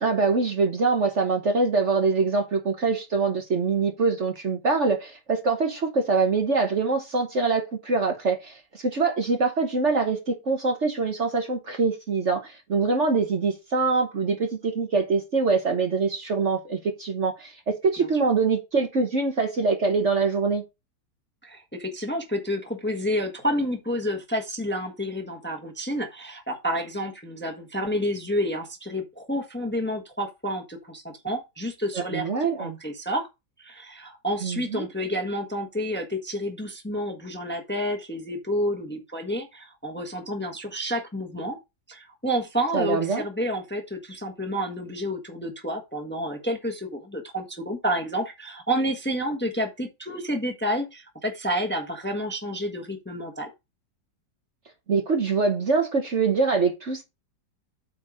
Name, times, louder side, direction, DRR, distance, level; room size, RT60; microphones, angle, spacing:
voice 1, 0.0-20.6 31.9-32.8 34.4-34.8 42.7-43.2 54.9-57.0, right 4 dB, 45° right, 1.3 m, -24 dB
voice 2, 21.4-32.3 32.6-33.3 33.6-41.6 41.9-53.5, equal, 5° left, 1.2 m, -29 dB
8.5 x 4.1 x 4.9 m
omnidirectional pair, 1.9 m